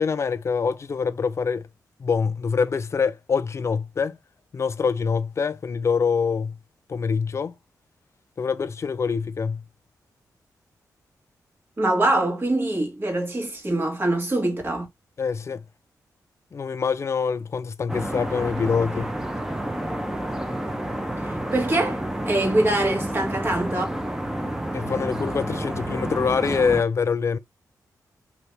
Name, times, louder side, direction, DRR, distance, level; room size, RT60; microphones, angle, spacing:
voice 1, 0.0-1.7 2.0-4.2 4.5-6.6 6.9-7.6 8.4-9.6 15.2-15.6 16.5-19.1 24.7-27.4, left 5 dB, 45° left, 0.4 m, -25 dB
voice 2, 11.8-14.9 21.5-23.8, right 1 dB, 35° right, 1.6 m, -23 dB
sound 1, 17.9-26.8, right 1 dB, 10° right, 0.8 m, -30 dB
2.8 x 2.7 x 3.3 m
cardioid pair, 60°, 7 cm